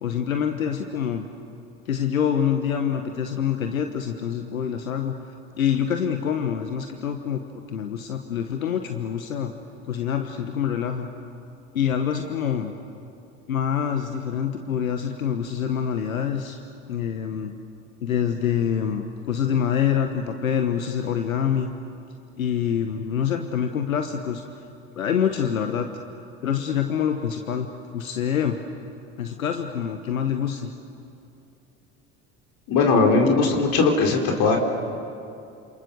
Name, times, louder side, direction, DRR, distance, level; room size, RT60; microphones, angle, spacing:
voice 1, 0.0-1.3 1.9-5.1 5.6-7.4 7.7-9.5 9.9-11.1 11.7-12.7 13.5-16.6 16.9-17.5 18.0-21.7 22.4-24.6 24.9-25.9 26.4-28.6 29.2-30.7, left 8 dB, 85° left, 6 dB, 1.2 m, -26 dB
voice 2, 32.7-34.6, left 4 dB, 55° left, 2 dB, 3.8 m, -19 dB
28.5 x 27.5 x 6.8 m, 2.6 s
hypercardioid pair, 65°, 40 cm